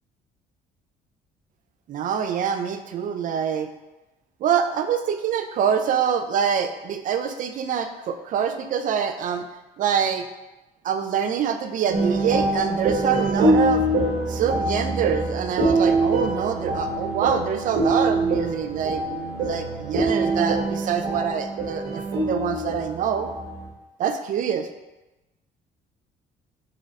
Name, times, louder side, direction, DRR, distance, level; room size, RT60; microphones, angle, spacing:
voice 1, 1.9-3.7 4.4-9.4 9.8-10.2 10.8-13.8 14.3-23.3 24.0-24.7, right 7 dB, 50° right, 7 dB, 0.4 m, -25 dB
sound 1, 11.9-23.7, right 2 dB, 65° right, 1.1 m, -24 dB
3.9 x 3.8 x 3.2 m, 1.0 s
cardioid pair, 110°, 17 cm